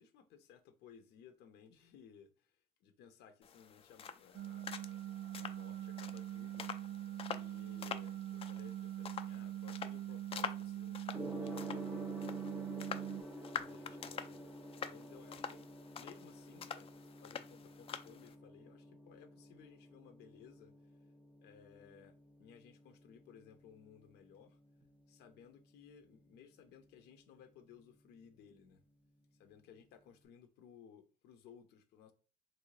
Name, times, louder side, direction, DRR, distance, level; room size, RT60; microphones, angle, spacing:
voice 1, 0.0-2.5 2.8-4.7 5.4-6.7 7.2-12.9 13.6-14.5 14.8-20.7 21.4-24.6 25.1-28.8 29.4-32.1, left 7 dB, 80° left, 0.7 m, -60 dB
sound 1, 3.4-18.3, left 7 dB, 35° left, 0.4 m, -47 dB
sound 2, 4.3-13.2, right 12 dB, 80° right, 0.4 m, -43 dB
Gong, 11.1-30.1, equal, 10° right, 0.6 m, -51 dB
3.2 x 2.7 x 3.1 m
cardioid pair, 110°, 17 cm